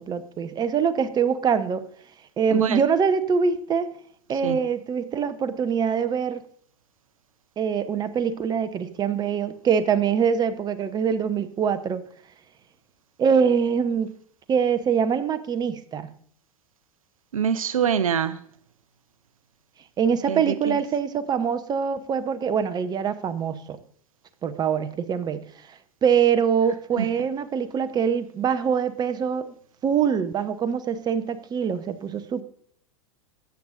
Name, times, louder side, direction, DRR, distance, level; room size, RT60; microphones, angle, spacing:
voice 1, 0.0-1.8 2.4-3.9 4.3-6.4 7.6-12.0 13.2-14.1 14.5-16.1 20.0-23.8 24.4-25.4 25.7-29.5 29.8-32.4, right 7 dB, 25° right, 0.7 m, -24 dB
voice 2, 17.3-18.4 20.3-20.8 27.0-27.1, right 8 dB, 80° right, 0.5 m, -24 dB
13.5 x 7.9 x 2.5 m
figure-of-eight pair, 90°, 17 cm